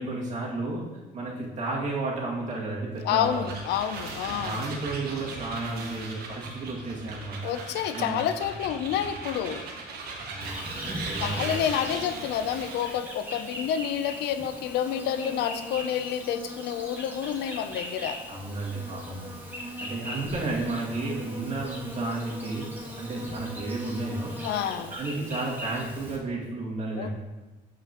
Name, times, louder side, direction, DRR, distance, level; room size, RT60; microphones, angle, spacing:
voice 1, 0.0-3.4 4.2-7.6 7.9-8.2 10.2-11.5 18.3-24.4 24.9-27.1, right 2 dB, 45° right, -4 dB, 2.3 m, -33 dB
sound 1, 2.9-13.0, right 3 dB, 65° right, 1.4 m, -38 dB
voice 2, 3.0-4.6 7.4-9.6 11.2-18.2 24.4-24.9 27.0-27.1, left 9 dB, 80° left, 11 dB, 0.6 m, -29 dB
Insect, 10.4-26.2, equal, 10° right, 1.5 m, -40 dB
12.0 x 5.0 x 3.0 m, 1.1 s
cardioid pair, 110°, 17 cm